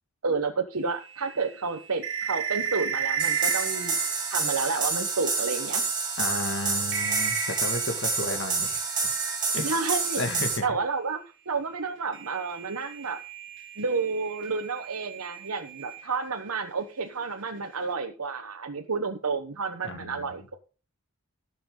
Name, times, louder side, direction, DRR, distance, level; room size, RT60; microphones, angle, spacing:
voice 1, 0.2-4.0 4.3-5.9 9.6-10.2 10.6-11.2 11.5-13.2 13.8-20.6, right 4 dB, 80° right, 3 dB, 1.1 m, -30 dB
sound 1, 1.0-5.4 5.9-6.0 6.3-6.5 6.9-9.8 12.1-16.5, right 6 dB, 55° right, 2.1 m, -34 dB
sound 2, 3.2-10.6, right 4 dB, 20° right, 3.1 m, -28 dB
voice 2, 6.2-8.8 9.5-9.7 10.2-10.6 19.8-20.4, left 2 dB, 55° left, 7 dB, 1.9 m, -33 dB
17.5 x 6.8 x 3.8 m, 0.35 s
head